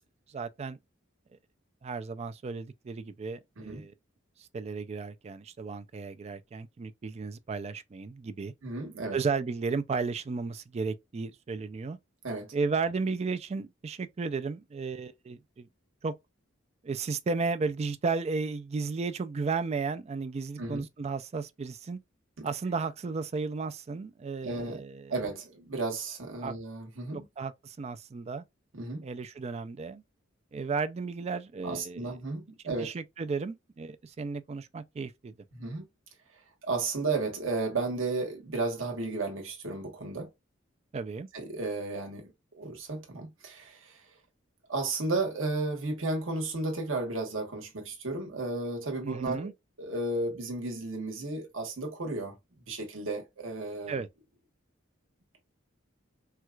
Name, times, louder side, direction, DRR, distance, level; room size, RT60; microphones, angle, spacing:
voice 1, 0.3-0.8 1.8-3.9 4.4-8.5 9.1-12.0 12.5-15.7 16.0-16.1 16.8-22.0 22.4-25.1 26.4-26.5 27.1-28.4 29.0-30.0 30.5-32.2 32.7-35.3 40.9-41.3 49.0-49.5 53.9-54.1, right 4 dB, 35° right, 0.3 m, -34 dB
voice 2, 3.6-3.9 8.6-9.2 12.2-12.5 20.6-20.9 22.4-22.5 24.4-24.8 25.1-27.3 28.7-29.1 31.6-32.9 35.5-35.9 36.6-40.3 41.3-44.1 44.7-49.5 49.8-52.4 52.7-54.0, right 3 dB, 85° right, 1.2 m, -33 dB
4.4 x 2.3 x 2.2 m
head